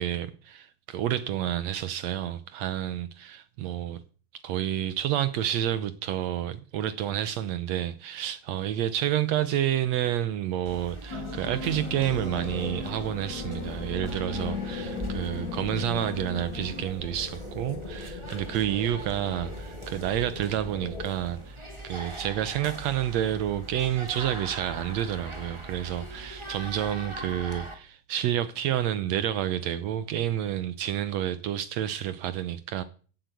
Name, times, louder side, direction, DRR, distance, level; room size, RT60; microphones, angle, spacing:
voice 1, 0.0-4.0 4.4-21.6 21.8-32.8, right 11 dB, 85° right, 1.5 m, -29 dB
sound 1, 10.6-27.7, right 1 dB, 15° right, 0.9 m, -41 dB
sound 2, 11.1-16.8, left 6 dB, 80° left, 0.9 m, -38 dB
sound 3, 11.6-21.1, left 3 dB, 25° left, 0.8 m, -40 dB
15.5 x 7.8 x 8.2 m
omnidirectional pair, 4.1 m